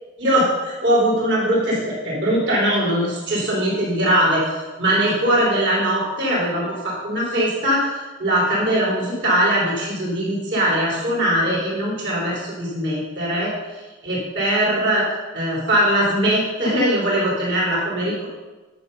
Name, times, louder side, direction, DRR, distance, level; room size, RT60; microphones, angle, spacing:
voice 1, 0.2-4.5 4.8-13.5 14.0-15.0 15.3-18.3, right 1 dB, 60° right, -5 dB, 3.8 m, -21 dB
11.0 x 6.8 x 5.5 m, 1.2 s
head